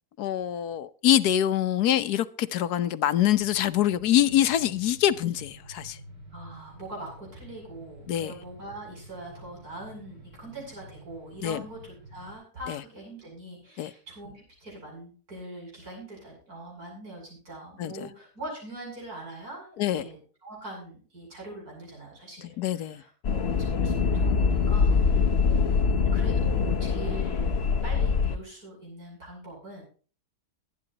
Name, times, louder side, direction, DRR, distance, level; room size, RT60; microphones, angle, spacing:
voice 1, 0.2-6.0 8.1-8.3 11.4-11.6 12.7-12.8 13.8-13.9 17.8-18.1 19.8-20.0 22.6-23.0, left 11 dB, 80° left, 1.3 m, -25 dB
sound 1, 3.1-12.3, right 1 dB, 30° right, 8.0 m, -49 dB
voice 2, 6.3-27.5 27.8-29.8, right 1 dB, 70° right, 8.6 m, -42 dB
sound 2, 23.2-28.4, left 5 dB, 45° left, 1.0 m, -24 dB
22.5 x 9.7 x 2.9 m
omnidirectional pair, 1.7 m